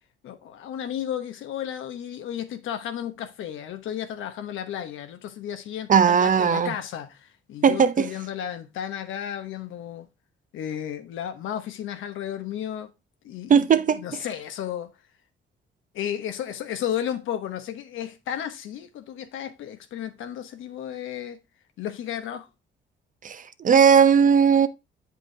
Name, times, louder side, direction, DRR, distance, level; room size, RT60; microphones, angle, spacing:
voice 1, 0.2-10.1 10.5-12.9 13.2-14.9 15.9-21.4 21.8-22.5, left 10 dB, 80° left, 1.0 m, -33 dB
voice 2, 5.9-6.7 7.6-8.1 13.5-14.0 23.2-24.7, right 7 dB, 40° right, 0.7 m, -18 dB
7.9 x 5.1 x 3.3 m
cardioid pair, 90°, 20 cm